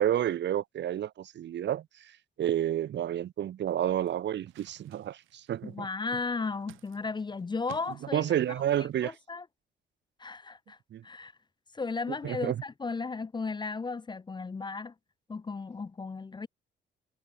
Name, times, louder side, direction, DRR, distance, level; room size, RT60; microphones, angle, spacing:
voice 1, 0.0-5.9 8.1-9.1 10.9-11.0 12.2-12.6, right 11 dB, 65° right, 1.2 m, -30 dB
sound 1, 3.7-8.9, right 15 dB, 90° right, 2.1 m, -56 dB
voice 2, 5.6-8.4 9.0-9.4 10.2-10.8 11.0-11.3 11.7-14.9 15.3-16.5, left 4 dB, 20° left, 0.6 m, -35 dB
cardioid pair, 90°, 20 cm